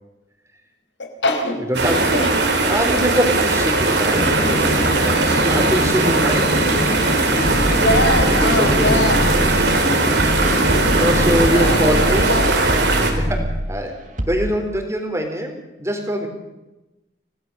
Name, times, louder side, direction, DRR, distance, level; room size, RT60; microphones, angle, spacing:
voice 1, 1.0-2.5 7.7-9.3 11.4-12.7, left 1 dB, 85° left, 4 dB, 4.9 m, -23 dB
voice 2, 1.7-2.3 2.7-6.8 7.5-7.8 8.3-9.0 9.6-9.8 10.2-10.4 10.8-12.3 13.2-16.3, equal, 15° right, 4 dB, 3.7 m, -24 dB
sound 1, 1.7-13.1, right 3 dB, 70° right, 4.0 m, -19 dB
sound 2, 4.1-12.0, left 1 dB, 40° left, 0.8 m, -25 dB
sound 3, 7.4-9.7 10.2-13.7 14.2-14.4, equal, 45° right, 3.0 m, -24 dB
26.5 x 17.5 x 6.9 m, 1.0 s
head